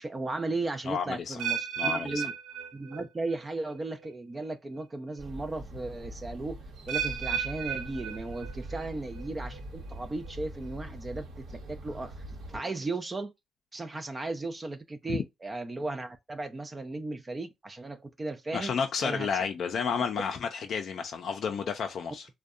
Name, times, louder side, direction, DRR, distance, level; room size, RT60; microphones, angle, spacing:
voice 1, 0.0-2.3 2.7-6.6 6.9-11.3 11.7-13.3 13.7-18.8 19.0-19.3, right 2 dB, 25° right, 0.3 m, -36 dB
voice 2, 0.9-1.4 1.8-2.3 15.1-15.2 18.5-22.3, left 6 dB, 60° left, 0.4 m, -31 dB
sound 1, 1.4-3.4 3.7-4.1 4.8-4.9 6.9-8.8 9.2-9.6 10.2-10.3, right 8 dB, 90° right, 0.6 m, -34 dB
sound 2, 5.2-12.6, right 1 dB, 70° right, 0.9 m, -43 dB
2.6 x 2.1 x 2.3 m
cardioid pair, 90°, 0 cm